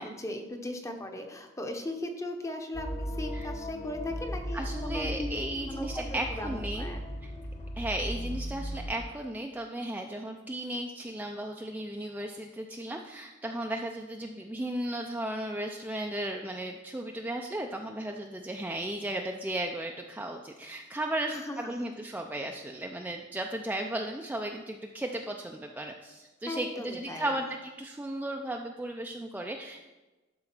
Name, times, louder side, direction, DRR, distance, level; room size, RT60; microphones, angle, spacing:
voice 1, 0.0-5.3 5.7-7.0 21.3-21.7 26.5-27.3, left 1 dB, 15° left, 4 dB, 0.8 m, -38 dB
sound 1, 2.7-8.9, equal, 40° left, 1.4 m, -37 dB
voice 2, 4.5-7.3 7.8-29.8, right 1 dB, 10° right, 2 dB, 0.4 m, -35 dB
11.5 x 3.9 x 6.0 m, 1.2 s
head